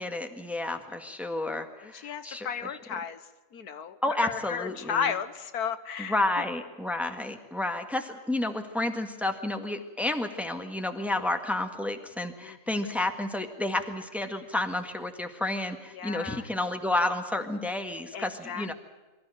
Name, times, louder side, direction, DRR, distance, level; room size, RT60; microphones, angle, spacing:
voice 1, 0.0-2.7 4.0-5.1 6.0-18.7, left 2 dB, ahead, 5 dB, 1.6 m, -31 dB
voice 2, 1.8-3.2 3.5-6.1 12.4-12.9 15.9-16.5 18.1-18.7, left 7 dB, 75° left, 11 dB, 1.5 m, -34 dB
24.5 x 14.0 x 9.1 m, 1.2 s
omnidirectional pair, 1.7 m